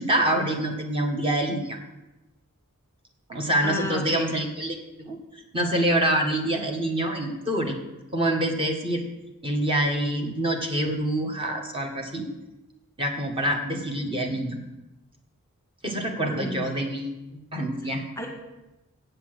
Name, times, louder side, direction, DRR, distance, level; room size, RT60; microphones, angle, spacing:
voice 1, 0.0-1.8 3.3-5.2 5.5-7.8 8.1-9.0 9.4-12.3 13.0-14.6 15.8-17.1 17.5-18.0, right 1 dB, 25° right, 2 dB, 1.5 m, -26 dB
voice 2, 3.6-4.3 16.0-16.7 17.8-18.3, left 2 dB, 10° left, 2 dB, 1.3 m, -34 dB
7.9 x 7.2 x 7.8 m, 1.0 s
head